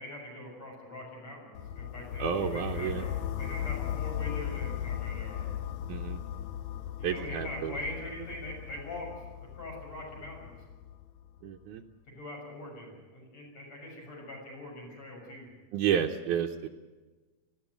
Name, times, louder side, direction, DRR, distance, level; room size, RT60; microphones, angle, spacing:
voice 1, 0.0-5.5 7.0-9.2 9.5-10.5 12.1-15.5, left 1 dB, 55° left, -1 dB, 8.0 m, -42 dB
sound 1, 1.5-11.5, left 10 dB, 70° left, 1.4 m, -37 dB
voice 2, 2.2-3.1 5.9-6.2 7.0-7.8 11.4-11.8 15.7-16.7, right 8 dB, 80° right, 0 dB, 2.3 m, -30 dB
19.5 x 16.0 x 9.2 m, 1.3 s
omnidirectional pair, 3.6 m